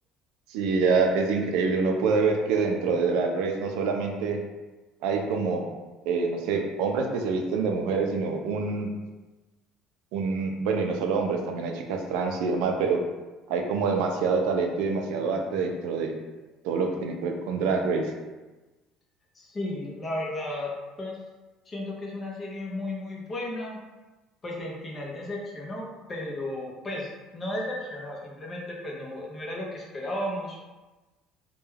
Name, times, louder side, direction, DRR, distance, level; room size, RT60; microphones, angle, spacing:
voice 1, 0.5-4.4 5.0-5.7 6.0-8.9 10.1-13.0 13.5-16.1 16.6-18.1, right 4 dB, 80° right, 2 dB, 0.4 m, -26 dB
voice 2, 19.3-21.2 21.7-23.8 24.4-30.6, left 1 dB, 25° left, -2 dB, 0.6 m, -34 dB
2.2 x 2.2 x 3.2 m, 1.2 s
cardioid pair, 130°, 0 cm